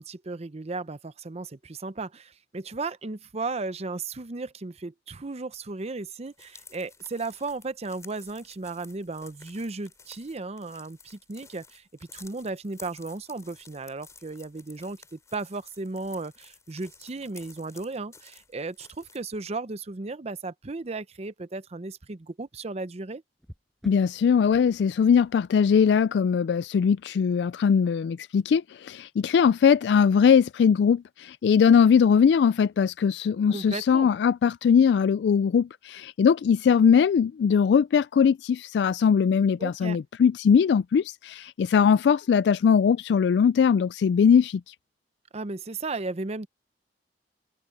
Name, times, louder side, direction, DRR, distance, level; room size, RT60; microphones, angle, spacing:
voice 1, 0.0-11.8 12.1-23.2 33.5-34.1 39.6-40.0 45.3-46.5, right 3 dB, 40° right, 0.7 m, -35 dB
sound 1, 6.3-19.5, left 4 dB, 20° left, 3.3 m, -53 dB
sound 2, 17.0-17.1 19.3-20.1 20.7-20.9 23.3-27.0 30.9-31.1, equal, ahead, 7.3 m, -54 dB
voice 2, 23.8-44.7, left 7 dB, 70° left, 0.3 m, -21 dB
open air
head